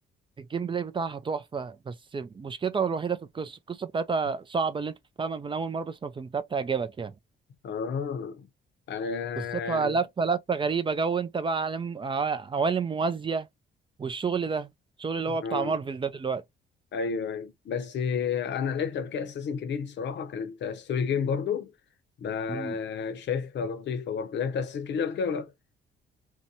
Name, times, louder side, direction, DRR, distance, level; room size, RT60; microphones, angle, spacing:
voice 1, 0.4-7.1 9.4-13.5 14.0-14.7 15.0-16.4 22.5-22.8, right 5 dB, 25° right, 0.4 m, -29 dB
voice 2, 7.6-8.5 8.9-10.0 15.3-15.8 16.9-21.7 22.2-25.5, left 6 dB, 65° left, 0.7 m, -31 dB
2.7 x 2.1 x 2.7 m
cardioid pair, 90°, 20 cm